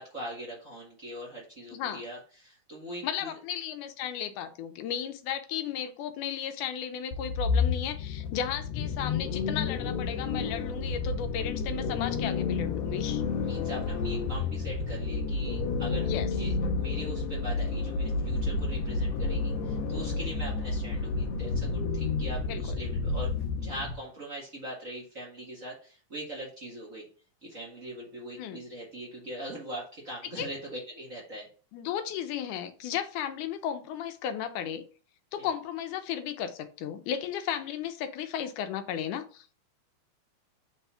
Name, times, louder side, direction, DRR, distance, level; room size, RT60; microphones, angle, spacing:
voice 1, 0.0-3.3 13.4-27.1 27.4-31.5 35.4-35.5, right 1 dB, 35° right, -5 dB, 1.6 m, -41 dB
voice 2, 1.7-2.0 3.0-13.2 16.0-16.3 22.5-22.8 28.4-28.6 30.4-30.5 31.7-34.8 35.3-39.5, left 9 dB, 80° left, 8 dB, 2.1 m, -34 dB
sound 1, 7.1-24.0, left 4 dB, 65° left, 1.8 m, -30 dB
4.5 x 4.1 x 5.6 m, 0.38 s
omnidirectional pair, 3.7 m